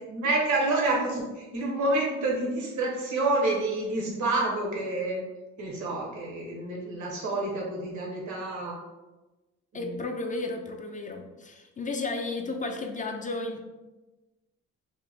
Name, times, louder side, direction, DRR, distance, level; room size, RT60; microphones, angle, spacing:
voice 1, 0.1-5.2 5.6-8.8 9.7-10.0, right 2 dB, 70° right, -3 dB, 1.0 m, -28 dB
voice 2, 9.7-13.6, left 3 dB, 25° left, 4 dB, 0.4 m, -33 dB
2.9 x 2.2 x 4.0 m, 1.1 s
cardioid pair, 90°, 30 cm